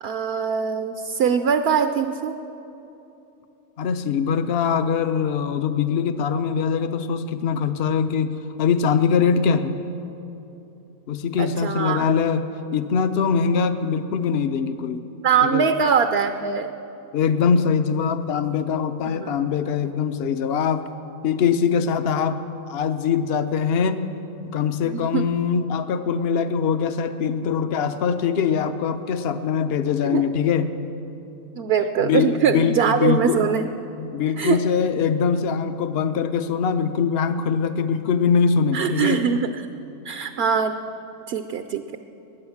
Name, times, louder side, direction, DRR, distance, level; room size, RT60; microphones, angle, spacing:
voice 1, 0.0-2.3 11.4-12.1 15.2-16.7 19.1-19.4 24.8-25.3 30.0-30.2 31.6-33.7 34.4-34.6 38.7-39.6 40.0-40.7 41.3-41.8, right 7 dB, 60° right, 8 dB, 0.8 m, -22 dB
voice 2, 3.8-9.8 11.1-12.4 12.7-15.0 15.4-15.7 17.1-20.8 21.2-22.4 22.7-24.0 24.5-30.7 32.0-33.4 34.0-39.2, left 6 dB, 55° left, 10 dB, 0.9 m, -22 dB
21.0 x 9.2 x 7.1 m, 2.9 s
omnidirectional pair, 1.3 m